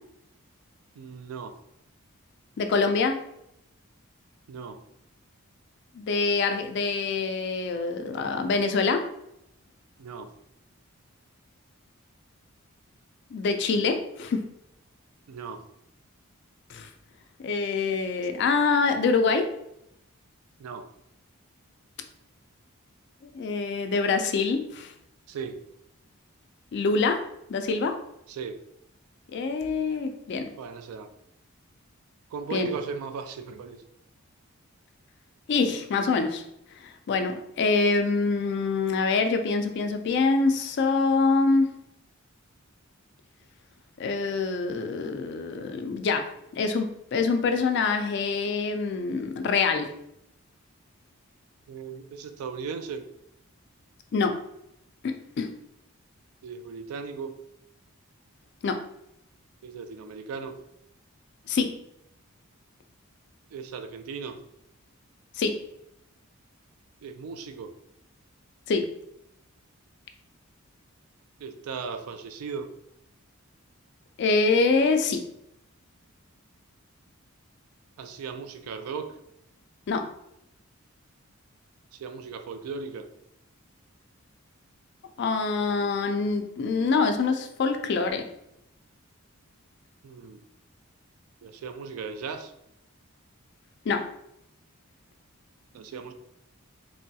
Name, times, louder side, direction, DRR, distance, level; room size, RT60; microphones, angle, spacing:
voice 1, 1.0-1.6 4.5-4.8 10.0-10.3 15.3-15.6 20.6-20.9 25.3-25.6 28.3-28.6 30.6-31.1 32.3-33.8 51.7-53.1 56.4-57.4 59.6-60.6 63.5-64.4 67.0-67.7 71.4-72.7 78.0-79.2 81.9-83.1 90.0-90.4 91.4-92.5 95.7-96.1, right 5 dB, 80° right, 7 dB, 0.3 m, -37 dB
voice 2, 2.6-3.2 6.0-9.1 13.3-14.5 16.7-16.9 17.4-19.5 23.3-24.9 26.7-27.2 27.5-28.0 29.3-30.5 32.5-32.7 35.5-36.4 36.8-41.7 44.0-49.9 54.1-54.4 55.0-55.5 58.6-58.8 61.5-61.7 65.4-65.6 68.7-68.9 74.2-75.3 79.9-80.1 85.2-88.3 93.9-94.1, left 4 dB, 50° left, 7 dB, 0.3 m, -25 dB
3.1 x 2.7 x 2.3 m, 0.79 s
head